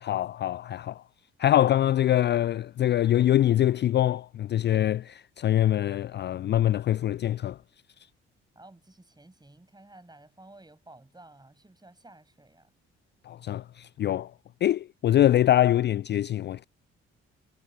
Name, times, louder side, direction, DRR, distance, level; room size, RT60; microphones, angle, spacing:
voice 1, 0.0-1.0 1.4-7.6 13.2-14.3 14.6-16.6, left 12 dB, 35° left, 0.5 m, -24 dB
voice 2, 8.5-12.7, right 2 dB, 10° right, 7.7 m, -53 dB
figure-of-eight pair, 45°, 33 cm